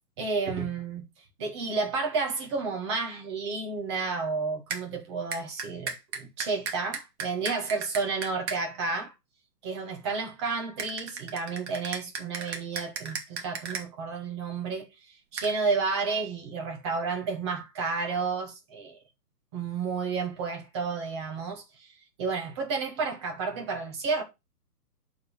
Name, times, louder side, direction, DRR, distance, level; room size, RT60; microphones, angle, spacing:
voice 1, 0.2-1.0 1.4-9.1 9.6-14.9 15.3-19.0 19.5-21.9 22.2-24.2, right 4 dB, 20° right, 0.9 m, -31 dB
sound 1, 4.7-4.8 5.3-8.6 10.8-13.8 15.4-15.5, right 5 dB, 40° right, 1.5 m, -35 dB
6.5 x 3.7 x 6.3 m
hypercardioid pair, 155°, 47 cm